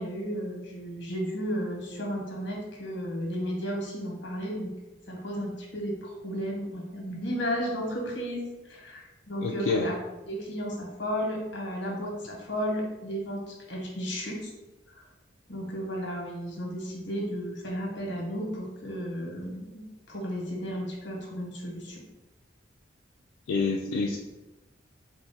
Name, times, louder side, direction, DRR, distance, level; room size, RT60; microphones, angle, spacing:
voice 1, 0.0-4.7 5.1-10.0 10.3-14.5 14.9-15.0 15.5-19.8 20.1-22.0, equal, 65° left, -1 dB, 1.1 m, -33 dB
voice 2, 9.4-9.9 23.5-24.2, left 4 dB, 90° left, 2 dB, 0.3 m, -27 dB
4.3 x 2.0 x 4.0 m, 1.1 s
head